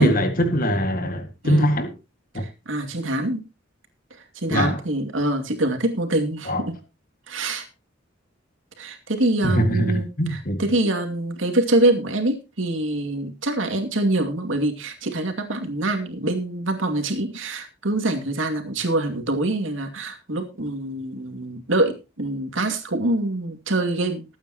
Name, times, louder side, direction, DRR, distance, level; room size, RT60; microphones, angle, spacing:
voice 1, 0.0-1.9 2.3-2.4 4.5-4.8 6.5-6.6 9.4-10.6, equal, 45° left, 2.0 m, -22 dB
voice 2, 2.3-3.4 4.4-6.8 7.3-7.7 8.8-24.2, right 2 dB, 90° right, 2.4 m, -25 dB
21.0 x 8.9 x 3.0 m
head